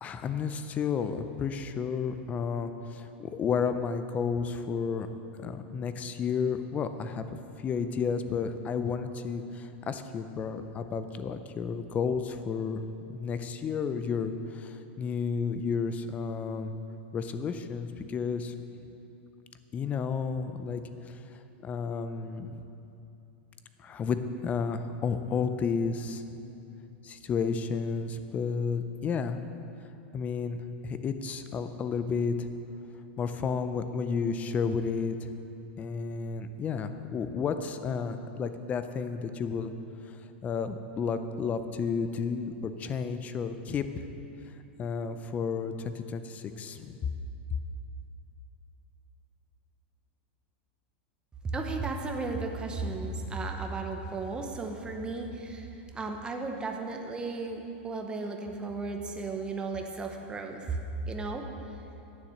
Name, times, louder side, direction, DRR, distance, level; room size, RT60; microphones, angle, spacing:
voice 1, 0.0-5.1 5.4-12.8 13.1-16.7 17.1-18.5 19.7-21.4 21.6-22.6 23.8-26.2 27.0-29.4 30.1-32.5 33.2-35.2 35.8-39.7 40.4-44.1 44.8-47.1, left 5 dB, 25° left, 10 dB, 0.5 m, -32 dB
voice 2, 51.5-55.7 55.9-60.8 61.1-61.4, right 3 dB, 15° right, 3 dB, 0.9 m, -34 dB
9.4 x 7.3 x 6.4 m, 2.9 s
supercardioid pair, 140°, 6 cm